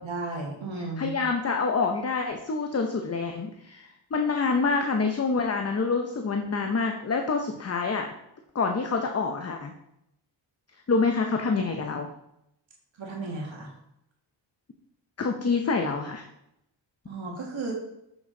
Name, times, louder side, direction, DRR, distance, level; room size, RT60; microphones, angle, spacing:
voice 1, 0.0-1.2 13.0-13.7 17.1-17.7, right 3 dB, 75° right, -2 dB, 1.7 m, -34 dB
voice 2, 0.8-8.1 8.5-9.7 10.9-12.1 15.2-16.2, left 4 dB, 35° left, 4 dB, 0.7 m, -27 dB
7.1 x 6.1 x 3.8 m, 0.81 s
wide cardioid pair, 95°, 46 cm